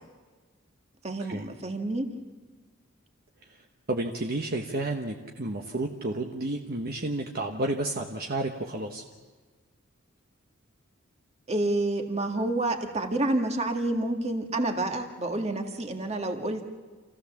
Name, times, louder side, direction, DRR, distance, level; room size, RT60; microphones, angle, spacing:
voice 1, 1.0-2.1 11.5-16.7, right 2 dB, 30° right, 4 dB, 1.8 m, -29 dB
voice 2, 3.9-9.0, right 2 dB, 50° right, 2 dB, 1.2 m, -31 dB
28.0 x 15.5 x 7.2 m, 1.4 s
head